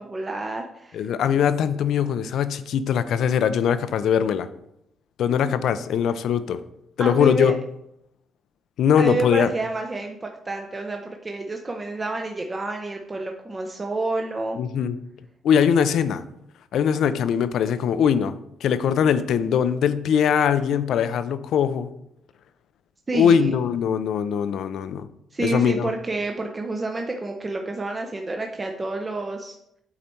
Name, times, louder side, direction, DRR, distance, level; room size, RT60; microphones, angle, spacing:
voice 1, 0.0-1.0 7.0-7.5 9.0-14.6 23.1-23.5 25.3-29.5, right 2 dB, 20° right, 3 dB, 0.6 m, -29 dB
voice 2, 0.9-4.5 5.2-6.6 7.0-7.5 8.8-9.5 14.6-15.0 15.4-16.2 16.7-18.3 18.6-21.9 23.1-25.1 25.4-25.9, left 8 dB, 70° left, 12 dB, 0.5 m, -21 dB
8.6 x 4.1 x 4.5 m, 0.78 s
cardioid pair, 115°, 0 cm